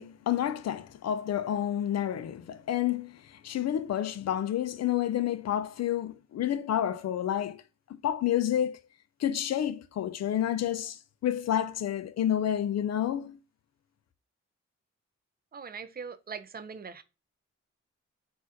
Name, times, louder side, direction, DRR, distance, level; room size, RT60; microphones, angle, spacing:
voice 1, 0.0-7.6 7.9-8.8 9.2-13.4, left 11 dB, 60° left, 0.4 m, -29 dB
voice 2, 15.5-17.0, right 6 dB, 30° right, 0.4 m, -41 dB
3.9 x 2.4 x 2.5 m
cardioid pair, 55°, 30 cm